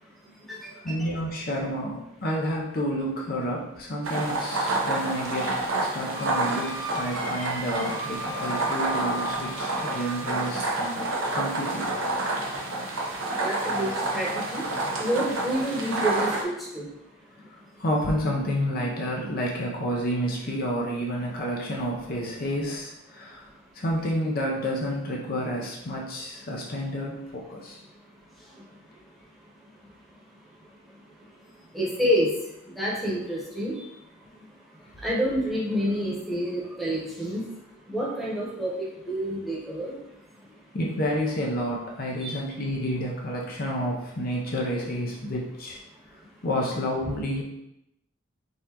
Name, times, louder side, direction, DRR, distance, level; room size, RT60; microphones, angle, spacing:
voice 1, 0.7-5.5 5.8-11.9 17.8-23.5 23.7-27.8 40.7-45.8 46.4-47.4, equal, 50° left, -2 dB, 0.6 m, -30 dB
sound 1, 4.0-16.4, right 2 dB, 90° right, 0.8 m, -29 dB
Wind instrument woodwind instrument, 6.1-10.5, right 1 dB, 25° right, 0.5 m, -37 dB
voice 2, 13.4-14.6 15.0-16.9 31.7-32.3 32.8-33.7 35.0-37.4 37.9-38.7 39.1-39.9 42.2-42.3, equal, ahead, -6 dB, 1.0 m, -28 dB
4.0 x 3.8 x 2.9 m, 0.86 s
head